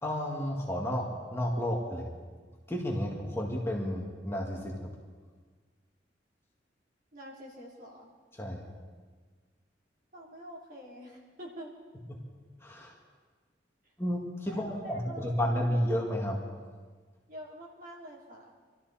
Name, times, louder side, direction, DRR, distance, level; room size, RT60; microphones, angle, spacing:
voice 1, 0.0-2.1 2.7-4.9 8.4-8.7 12.6-13.0 14.0-16.4, equal, 15° left, -2 dB, 2.1 m, -32 dB
voice 2, 7.1-8.1 10.1-11.7 13.8-13.9 14.5-15.8 17.3-18.5, equal, 50° right, -4 dB, 3.6 m, -46 dB
25.0 x 13.5 x 4.3 m, 1.5 s
head